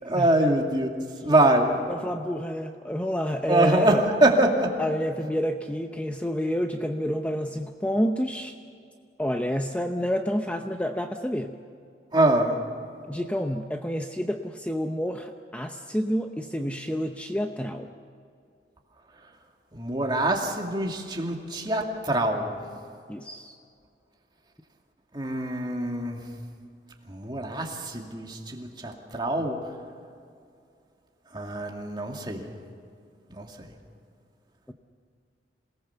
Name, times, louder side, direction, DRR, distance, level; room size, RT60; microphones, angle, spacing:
voice 1, 0.0-1.8 3.5-4.7 12.1-12.6 19.7-22.6 25.1-26.3 27.1-29.6 31.3-32.5 33.3-33.5, right 1 dB, 25° right, 1 dB, 2.4 m, -24 dB
voice 2, 1.9-4.0 4.8-8.6 9.2-11.5 13.1-17.9 23.1-23.6 34.7-34.8, equal, 10° left, 4 dB, 0.8 m, -29 dB
27.5 x 18.5 x 7.1 m, 2.3 s
head